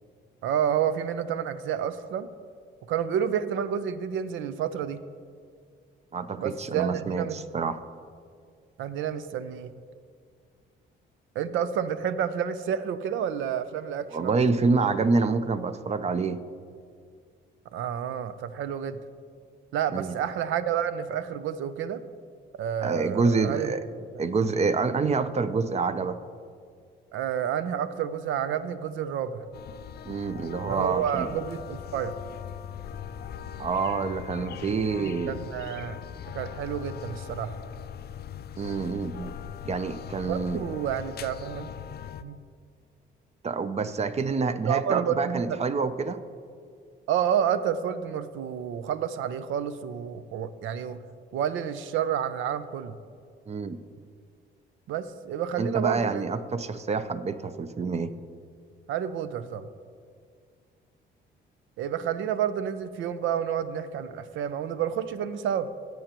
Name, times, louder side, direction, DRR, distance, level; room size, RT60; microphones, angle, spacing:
voice 1, 0.4-2.3 2.9-5.0 6.4-7.4 8.8-9.7 11.4-14.3 17.7-19.0 19.7-22.0 22.6-23.7 27.1-29.5 30.6-32.1 34.8-36.0 36.3-37.5 40.2-41.7 42.2-42.4 44.7-45.6 47.1-51.0 51.3-53.0 54.9-56.3 58.9-59.7 61.8-65.7, right 9 dB, 80° right, 13 dB, 0.5 m, -29 dB
voice 2, 6.1-7.8 14.1-16.4 19.9-20.2 22.8-23.8 24.2-26.2 30.1-31.4 33.6-35.3 38.6-39.3 39.6-40.6 43.4-46.2 53.5-53.8 55.6-58.1, right 4 dB, 35° right, 12 dB, 0.5 m, -27 dB
sound 1, 29.5-42.2, left 9 dB, 55° left, 0.4 m, -40 dB
17.0 x 7.7 x 3.0 m, 2.2 s
cardioid pair, 90°, 20 cm